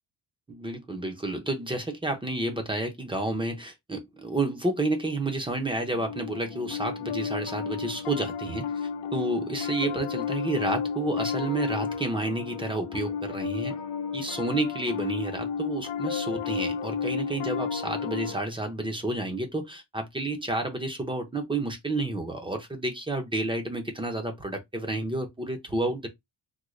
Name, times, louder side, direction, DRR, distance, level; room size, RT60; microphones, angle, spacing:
voice 1, 0.5-13.8 14.1-26.1, right 2 dB, 10° right, 0.5 m, -30 dB
Piano, 5.9-18.4, left 6 dB, 70° left, 0.6 m, -32 dB
3.7 x 2.1 x 3.1 m
wide cardioid pair, 170°, 44 cm